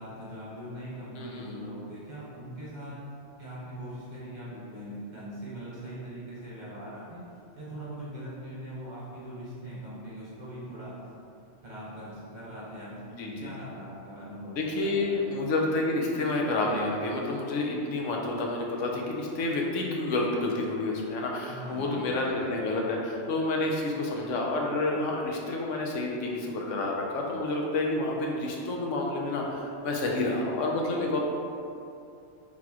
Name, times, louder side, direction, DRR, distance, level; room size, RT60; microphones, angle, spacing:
voice 1, 0.0-3.0 3.4-7.2 7.6-10.9 11.6-12.9 13.2-15.3 21.5-22.3, equal, 40° right, -8 dB, 1.1 m, -41 dB
voice 2, 1.2-1.6 13.0-13.5 14.6-31.2, left 2 dB, 85° left, -1 dB, 1.0 m, -29 dB
4.0 x 2.9 x 3.6 m, 2.6 s
omnidirectional pair, 1.3 m